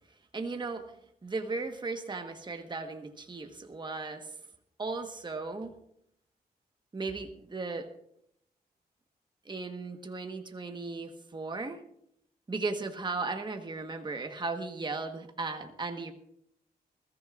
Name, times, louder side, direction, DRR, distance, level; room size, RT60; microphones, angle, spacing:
voice 1, 0.3-0.8 1.2-4.3 4.8-5.7 6.9-7.9 9.4-11.8 12.5-16.1, right 3 dB, 25° right, 5 dB, 1.3 m, -36 dB
21.0 x 14.0 x 2.5 m, 0.72 s
cardioid pair, 95°, 17 cm